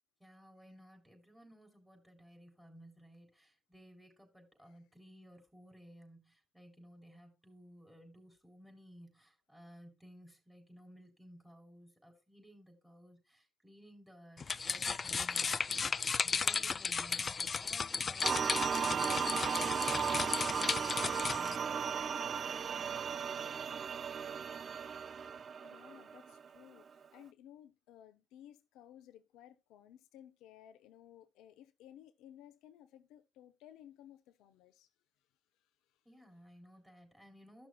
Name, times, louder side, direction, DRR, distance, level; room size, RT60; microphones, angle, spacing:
voice 1, 0.2-22.9 36.1-37.7, equal, 5° right, 3.8 m, -58 dB
sound 1, 14.4-21.6, left 5 dB, 45° left, 0.3 m, -35 dB
sound 2, 18.2-26.6, right 7 dB, 55° right, 0.3 m, -36 dB
voice 2, 25.6-34.9 35.6-36.0, left 11 dB, 85° left, 0.6 m, -57 dB
13.0 x 6.1 x 2.3 m
supercardioid pair, 60°, 0 cm